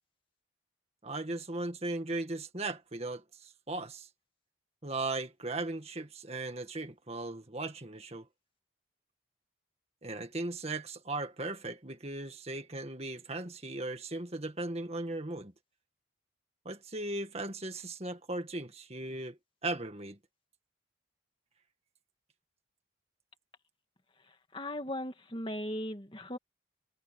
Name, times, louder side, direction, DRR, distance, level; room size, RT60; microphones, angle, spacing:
voice 1, 1.0-4.1 4.8-8.3 10.0-15.5 16.7-20.2, right 2 dB, 30° right, 1.8 m, -37 dB
voice 2, 24.5-26.4, left 1 dB, 25° left, 2.0 m, -37 dB
head